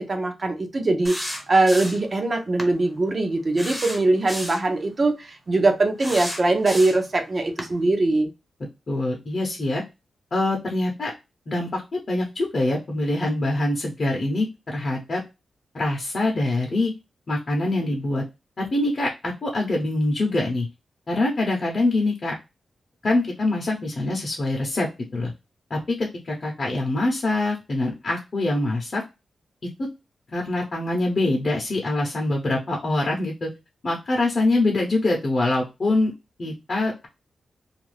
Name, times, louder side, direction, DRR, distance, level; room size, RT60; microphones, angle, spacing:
voice 1, 0.0-8.3, right 2 dB, 40° right, 0.6 m, -22 dB
sound 1, 1.0-2.1 2.6-2.7 3.6-4.7 6.0-7.1 7.6-7.7, equal, ahead, 0.7 m, -32 dB
voice 2, 8.9-9.8 10.3-11.1 11.5-15.2 15.7-16.9 17.3-18.2 18.6-20.7 21.1-22.3 23.0-25.3 25.7-29.0 30.3-33.5 33.8-36.1 36.4-37.1, left 2 dB, 45° left, 0.7 m, -24 dB
2.5 x 2.2 x 3.2 m
wide cardioid pair, 100°, 0 cm